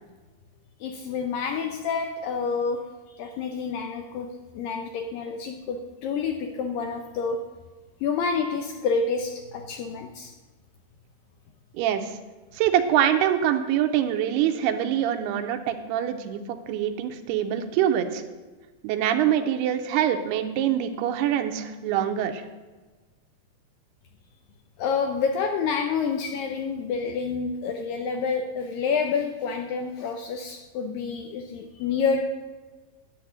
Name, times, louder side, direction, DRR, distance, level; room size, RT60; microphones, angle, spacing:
voice 1, 0.8-2.8 3.1-7.4 8.0-10.3 24.8-32.2, left 5 dB, 80° left, 4 dB, 2.0 m, -28 dB
voice 2, 11.7-12.2 12.5-18.2 18.8-22.4, right 10 dB, 85° right, 7 dB, 2.6 m, -24 dB
10.5 x 8.7 x 6.3 m, 1.3 s
omnidirectional pair, 4.7 m